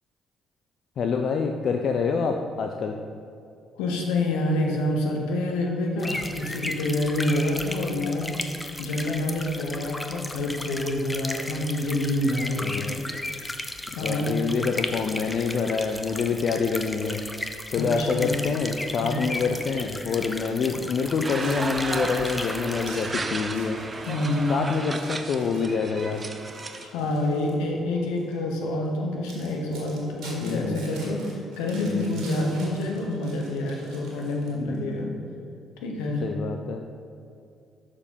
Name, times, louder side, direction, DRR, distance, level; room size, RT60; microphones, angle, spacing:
voice 1, 1.0-3.0 12.6-13.1 13.9-17.2 17.7-24.0 24.5-26.3 30.4-30.8 31.8-32.2 34.5-35.2 36.2-36.8, left 5 dB, 60° left, 4 dB, 0.4 m, -27 dB
voice 2, 3.8-8.3 8.8-12.9 13.9-14.3 17.7-18.4 19.0-19.2 24.1-24.5 26.8-35.1 35.8-36.2, left 1 dB, 80° left, 0 dB, 1.0 m, -27 dB
sound 1, 6.0-22.9, left 1 dB, 15° left, 0.6 m, -35 dB
sound 2, 21.2-26.9, right 3 dB, 30° right, 0.6 m, -34 dB
sound 3, 21.2-27.6 28.2-28.3 28.9-29.0 29.2-34.8, right 2 dB, 70° right, 1.8 m, -46 dB
6.4 x 5.0 x 5.4 m, 2.5 s
hypercardioid pair, 50°, 0 cm